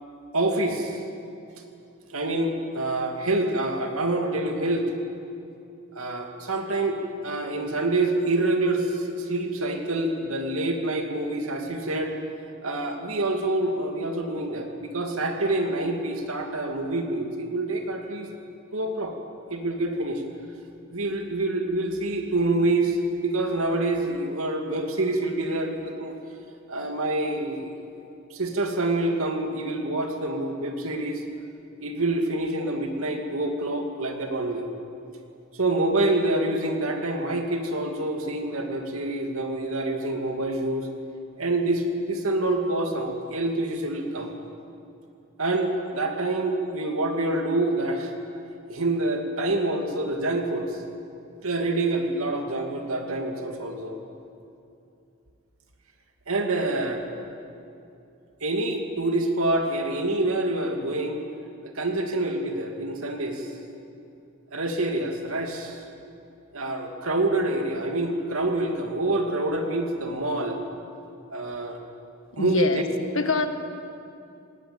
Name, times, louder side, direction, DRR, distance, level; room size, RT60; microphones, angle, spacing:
voice 1, 0.3-1.0 2.1-4.8 5.9-12.1 12.6-18.3 18.7-19.2 19.5-20.2 20.9-26.1 26.7-28.0 28.3-31.2 31.8-34.7 35.5-40.9 41.4-44.3 45.4-48.1 48.7-50.8 51.4-54.0 56.3-57.0 58.4-61.2 61.6-63.5 64.5-65.8 66.5-70.6 71.3-71.8 72.4-72.8, right 2 dB, 85° right, 4 dB, 2.5 m, -26 dB
voice 2, 72.3-72.8 73.1-73.5, left 3 dB, 65° left, 7 dB, 1.6 m, -24 dB
19.5 x 19.0 x 8.8 m, 2.7 s
head